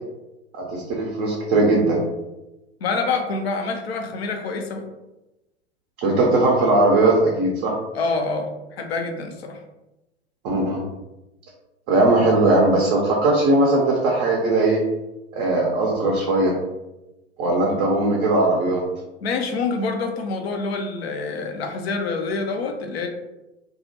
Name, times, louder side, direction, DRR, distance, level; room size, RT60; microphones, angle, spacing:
voice 1, 0.5-2.0 6.0-7.8 10.4-10.8 11.9-14.8 15.3-16.6 17.4-18.8, right 2 dB, 35° right, -2 dB, 0.5 m, -19 dB
voice 2, 2.8-4.8 7.9-9.6 19.2-23.1, left 4 dB, 65° left, 5 dB, 0.5 m, -26 dB
2.3 x 2.0 x 2.8 m, 0.99 s
figure-of-eight pair, 90°, 34 cm